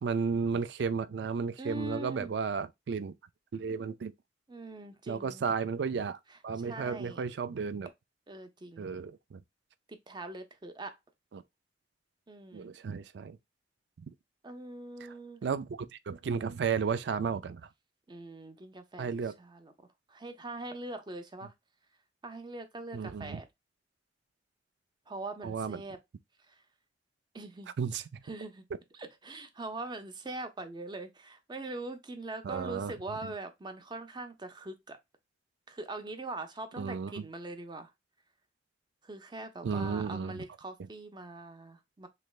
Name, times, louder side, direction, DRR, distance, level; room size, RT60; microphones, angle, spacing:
voice 1, 0.0-3.1 3.5-4.1 5.1-7.9 8.8-9.4 11.3-11.4 12.5-13.4 14.0-14.1 15.4-17.7 19.0-19.3 22.9-23.4 25.4-25.8 27.8-28.2 32.4-32.9 33.2-33.3 36.8-37.2 39.6-40.4, right 5 dB, 70° right, 0.4 m, -33 dB
voice 2, 1.6-2.3 4.5-5.4 6.6-7.2 8.3-8.9 10.1-10.9 12.3-12.7 14.4-15.4 18.1-19.7 20.1-21.5 22.2-23.5 25.1-26.0 26.5-26.6 27.3-27.7 28.2-28.6 29.0-35.0 35.7-37.9 39.0-42.1, right 2 dB, 25° right, 0.6 m, -42 dB
3.3 x 3.1 x 2.4 m
head